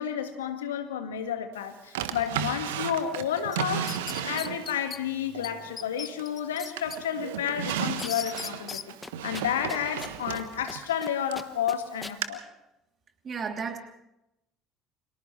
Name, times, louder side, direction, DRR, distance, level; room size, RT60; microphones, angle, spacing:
voice 1, 0.0-8.9 9.2-12.4, left 8 dB, 75° left, 8 dB, 1.8 m, -31 dB
Drawer open or close, 1.9-4.9 5.3-6.4 6.8-11.5 12.2-12.3, right 10 dB, 70° right, 1.3 m, -34 dB
sound 1, 3.5-5.0 5.4-5.5 5.8-7.0 7.4-8.9, left 7 dB, 35° left, 0.8 m, -38 dB
sound 2, 7.7-8.4 8.7-8.8 9.0-10.4 10.7-11.1 11.3-12.2, left 2 dB, 15° left, 1.2 m, -40 dB
voice 2, 13.2-13.8, right 5 dB, 35° right, 4 dB, 3.2 m, -32 dB
29.5 x 27.5 x 3.3 m, 0.88 s
figure-of-eight pair, 55°, 0 cm